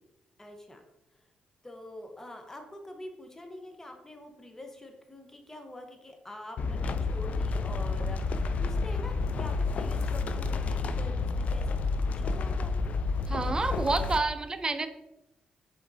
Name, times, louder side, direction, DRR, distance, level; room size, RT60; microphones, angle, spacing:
voice 1, 0.4-0.8 1.6-11.8 12.1-12.7, left 1 dB, 15° left, 3 dB, 0.9 m, -45 dB
sound 1, 6.6-14.2, left 3 dB, 60° left, 0.3 m, -30 dB
voice 2, 13.3-14.9, right 3 dB, 30° right, 9 dB, 0.4 m, -29 dB
5.1 x 3.7 x 2.7 m, 0.91 s
cardioid pair, 70°, 3 cm